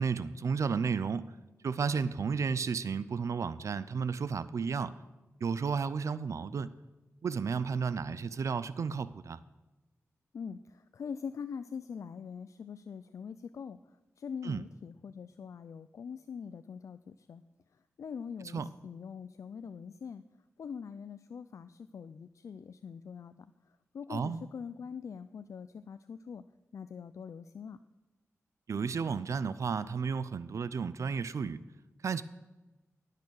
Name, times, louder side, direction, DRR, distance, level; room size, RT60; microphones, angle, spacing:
voice 1, 0.0-1.3 1.6-4.9 5.4-6.7 7.2-9.4 14.4-14.6 18.5-18.7 24.1-24.4 28.7-31.6 32.0-32.2, right 5 dB, 70° right, 16 dB, 0.5 m, -32 dB
voice 2, 10.3-13.8 14.2-17.4 18.0-20.2 20.6-23.5 23.9-26.4 26.7-27.8, left 6 dB, 75° left, 11 dB, 0.4 m, -43 dB
19.0 x 6.6 x 6.4 m, 1.1 s
wide cardioid pair, 125°, 5 cm